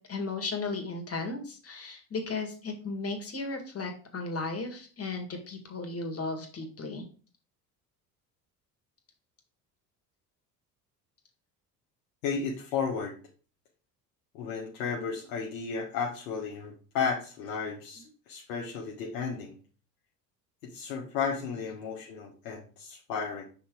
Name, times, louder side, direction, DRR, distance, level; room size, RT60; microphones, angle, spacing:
voice 1, 0.1-7.0, left 3 dB, 30° left, 4 dB, 2.0 m, -35 dB
voice 2, 12.2-13.2 14.3-19.6 20.6-23.4, left 5 dB, 75° left, -2 dB, 1.4 m, -33 dB
5.7 x 3.9 x 4.8 m, 0.39 s
hypercardioid pair, 65°, 48 cm